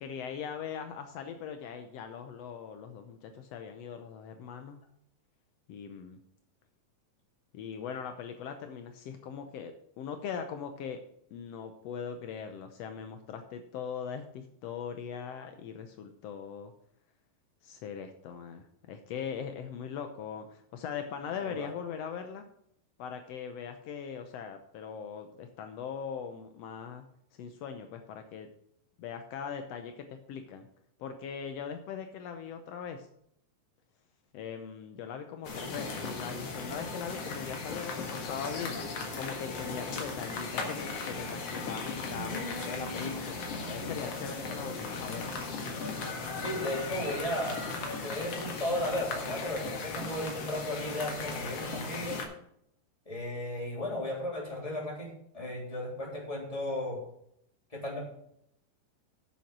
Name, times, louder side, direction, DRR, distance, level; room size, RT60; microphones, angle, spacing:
voice 1, 0.0-4.8 5.7-6.2 7.5-11.0 11.3-16.7 17.6-22.5 23.0-27.0 27.3-28.5 29.0-30.7 31.0-33.1 34.3-38.9 39.2-43.4 43.7-45.2, left 7 dB, 85° left, 7 dB, 1.4 m, -40 dB
sound 1, 35.4-52.2, left 4 dB, 55° left, 2.4 m, -37 dB
voice 2, 42.1-43.2 46.3-47.6 48.0-52.2 53.1-55.1 55.3-57.0 57.7-58.0, left 1 dB, 10° left, -2 dB, 3.1 m, -35 dB
9.0 x 7.2 x 6.1 m, 0.72 s
omnidirectional pair, 3.9 m